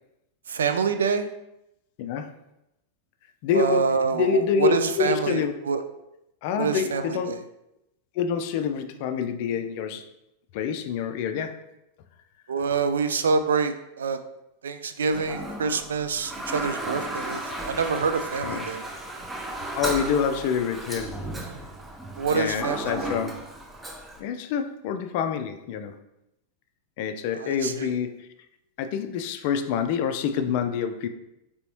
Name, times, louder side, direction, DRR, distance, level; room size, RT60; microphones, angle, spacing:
voice 1, 0.5-1.3 3.5-5.8 6.6-7.4 12.5-14.2 14.6-18.8 22.2-23.2 27.4-27.9, right 5 dB, 65° right, 9 dB, 0.3 m, -26 dB
voice 2, 2.0-2.3 3.4-3.8 4.1-5.5 6.4-7.4 8.2-10.0 10.5-11.6 18.4-18.7 19.7-21.2 22.3-23.3 24.2-25.9 27.0-28.3 28.8-31.1, left 7 dB, 45° left, 8 dB, 0.3 m, -27 dB
Toilet flush, 15.1-24.2, right 1 dB, 10° right, 0.5 m, -35 dB
3.9 x 3.4 x 3.0 m, 0.87 s
figure-of-eight pair, 90°, 0 cm